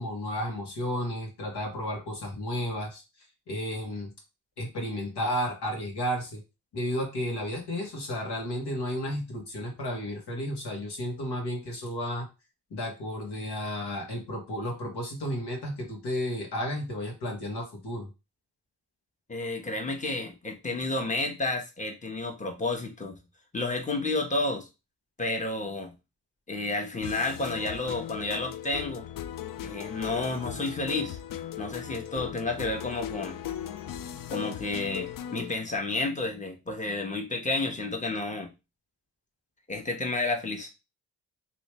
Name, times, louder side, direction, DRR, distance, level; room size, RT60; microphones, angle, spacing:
voice 1, 0.0-3.0 3.5-4.1 4.6-6.4 6.7-12.3 12.7-18.1, equal, 70° left, 1 dB, 1.6 m, -32 dB
voice 2, 19.3-23.2 23.5-24.7 25.2-25.9 26.5-29.0 29.6-31.2 31.6-33.4 34.3-38.5 39.7-40.7, left 2 dB, 20° left, 2 dB, 1.2 m, -31 dB
sound 1, 26.9-35.6, left 10 dB, 55° left, 0.4 m, -38 dB
3.1 x 2.9 x 3.2 m, 0.26 s
supercardioid pair, 45°, 41 cm